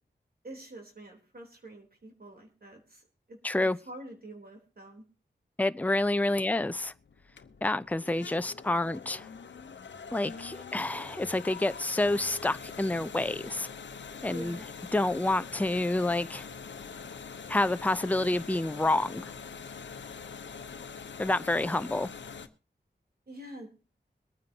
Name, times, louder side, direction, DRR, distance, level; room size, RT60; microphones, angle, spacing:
voice 1, 0.4-3.4 3.9-5.0 14.3-14.7 23.3-23.7, right 1 dB, 55° right, 3.6 m, -46 dB
voice 2, 3.4-3.8 5.6-6.9 7.6-9.3 10.1-13.7 14.2-14.6 14.9-16.5 17.5-19.3 21.2-22.1, left 2 dB, 10° left, 0.6 m, -28 dB
sound 1, 5.9-22.5, left 6 dB, 90° left, 0.9 m, -44 dB
22.5 x 9.5 x 2.9 m
cardioid pair, 55°, 18 cm